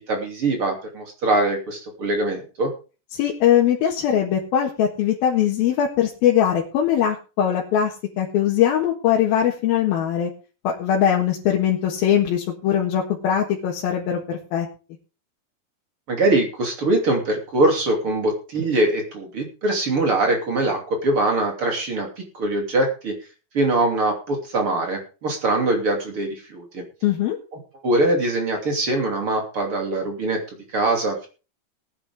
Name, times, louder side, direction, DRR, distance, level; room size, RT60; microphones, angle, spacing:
voice 1, 0.0-2.7 16.1-23.2 23.5-26.8 27.8-31.3, right 2 dB, 40° right, 2 dB, 3.5 m, -22 dB
voice 2, 3.1-10.3 10.6-14.7 27.0-27.4, left 9 dB, 90° left, -2 dB, 3.4 m, -21 dB
18.5 x 9.8 x 3.6 m, 0.34 s
omnidirectional pair, 4.1 m